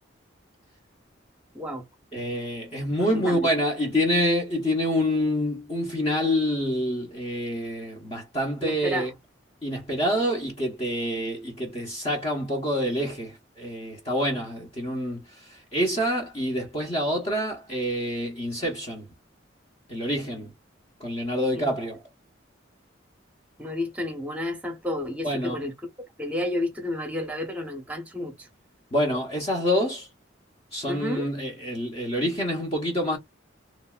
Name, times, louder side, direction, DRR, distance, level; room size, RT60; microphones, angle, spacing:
voice 1, 2.1-9.1 9.6-19.1 19.9-20.5 21.0-22.0 25.2-25.7 28.9-30.1 30.7-33.2, equal, 30° left, 0.9 m, -27 dB
voice 2, 3.1-3.5 8.6-9.1 21.5-21.7 23.6-25.7 26.2-28.5 30.9-31.3, left 1 dB, 5° right, 0.8 m, -31 dB
3.0 x 2.6 x 2.3 m
head